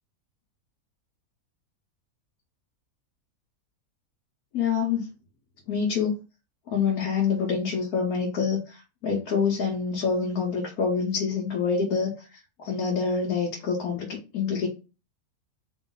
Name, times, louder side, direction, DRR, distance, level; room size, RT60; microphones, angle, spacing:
voice 1, 4.5-5.0 5.7-6.1 6.7-8.8 9.0-12.1 12.6-14.7, left 5 dB, 90° left, -1 dB, 1.4 m, -26 dB
3.1 x 3.1 x 3.9 m, 0.31 s
omnidirectional pair, 1.5 m